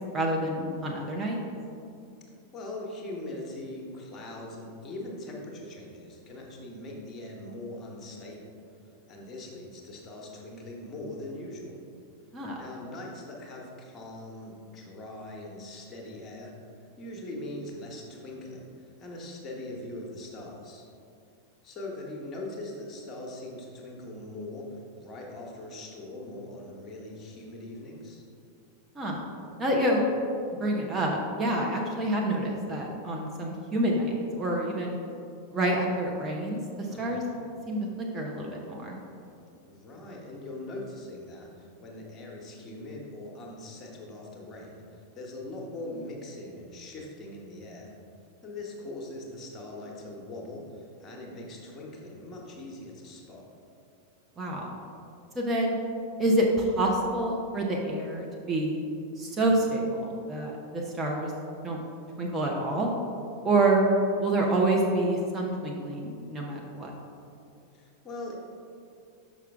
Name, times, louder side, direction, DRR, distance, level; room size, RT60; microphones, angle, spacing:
voice 1, 0.1-1.4 12.3-12.6 28.9-29.2 29.6-30.0 30.6-35.0 35.5-37.2 37.7-37.9 38.1-39.0 54.4-54.7 55.3-55.8 56.2-58.8 59.2-61.3 61.6-61.8 62.2-62.9 63.4-63.8 64.2-66.9, right 1 dB, 20° right, -1 dB, 0.8 m, -27 dB
voice 2, 2.5-8.5 9.1-11.8 12.6-16.5 17.0-20.8 21.6-28.2 36.9-37.4 39.7-47.9 48.4-53.4 67.7-68.4, left 1 dB, 25° left, -1 dB, 1.2 m, -41 dB
6.1 x 5.7 x 3.5 m, 2.5 s
figure-of-eight pair, 90°, 0 cm